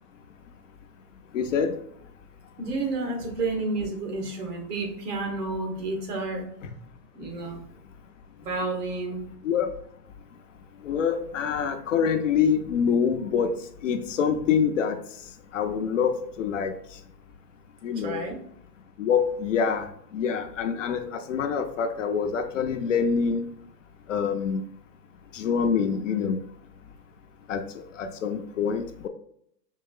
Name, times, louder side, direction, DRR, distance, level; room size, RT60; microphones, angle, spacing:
voice 1, 1.3-1.7 9.4-9.7 10.8-13.6 13.8-15.0 15.5-16.7 17.8-18.2 19.0-19.9 20.1-23.5 24.1-24.6 25.3-26.4 27.5-27.6 28.0-29.1, left 6 dB, 50° left, 7 dB, 0.5 m, -25 dB
voice 2, 2.6-6.5 7.1-7.6 8.4-9.2 18.0-18.4, right 3 dB, 65° right, 2 dB, 1.5 m, -30 dB
4.8 x 3.0 x 2.3 m, 0.68 s
hypercardioid pair, 155°, 50 cm